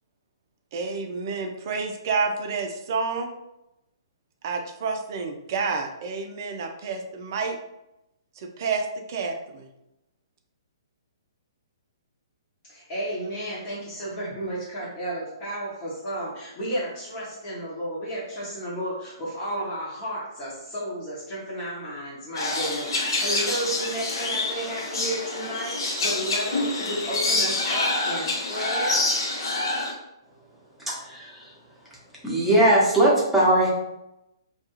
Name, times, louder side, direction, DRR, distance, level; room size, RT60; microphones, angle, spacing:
voice 1, 0.7-3.3 4.4-7.6 8.4-9.7, right 4 dB, 45° right, 0.4 m, -29 dB
voice 2, 12.7-29.0, right 1 dB, 30° left, 0.9 m, -32 dB
sound 1, 22.4-29.9, left 2 dB, 65° left, 0.7 m, -27 dB
voice 3, 30.8-31.5 32.2-33.7, right 1 dB, 5° right, 0.9 m, -20 dB
2.3 x 2.3 x 3.0 m
figure-of-eight pair, 125°, 2 cm